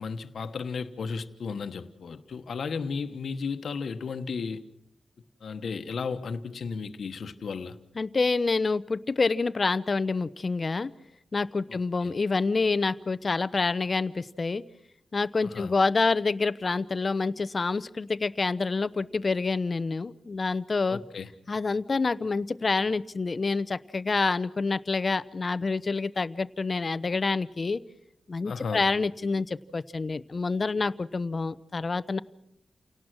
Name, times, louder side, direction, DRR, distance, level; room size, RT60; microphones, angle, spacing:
voice 1, 0.0-4.6 5.4-7.8 12.0-12.1 15.4-15.7 20.9-21.3 28.4-28.9, left 5 dB, 75° left, 1.2 m, -34 dB
voice 2, 8.0-10.9 11.3-14.6 15.1-21.0 21.5-27.8 28.3-32.2, left 4 dB, 40° left, 0.7 m, -27 dB
29.0 x 18.0 x 6.2 m
wide cardioid pair, 105°, 0 cm